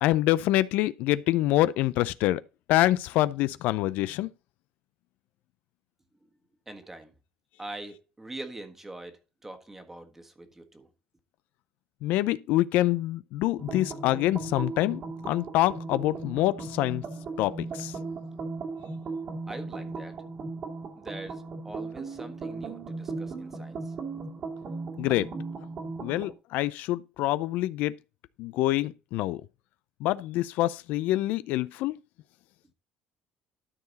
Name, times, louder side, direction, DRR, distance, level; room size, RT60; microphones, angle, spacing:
voice 1, 0.0-2.4 2.7-4.3 12.0-17.1 17.4-17.9 25.0-25.3 26.0-28.0 28.4-29.4 30.0-31.9, left 16 dB, 80° left, 0.4 m, -26 dB
voice 2, 6.7-7.1 7.6-10.9 19.5-20.2 21.0-24.3, right 2 dB, 10° right, 1.5 m, -43 dB
sound 1, 13.6-26.3, right 3 dB, 50° right, 2.3 m, -37 dB
12.5 x 4.7 x 4.1 m
cardioid pair, 120°, 3 cm